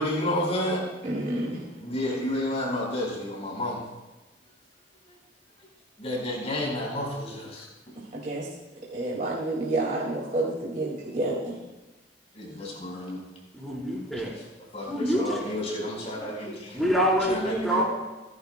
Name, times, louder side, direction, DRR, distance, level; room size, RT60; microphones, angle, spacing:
voice 1, 0.0-0.9 1.8-3.8 6.0-7.7 12.3-13.2 14.7-16.7 17.3-17.8, left 1 dB, 35° left, -2 dB, 4.7 m, -30 dB
voice 2, 1.0-1.6 8.1-8.4 8.9-11.5, right 2 dB, 45° right, -4 dB, 2.3 m, -29 dB
voice 3, 13.5-14.3 14.9-15.6 16.7-17.8, equal, ahead, -4 dB, 4.2 m, -26 dB
27.0 x 11.0 x 2.3 m, 1.1 s
head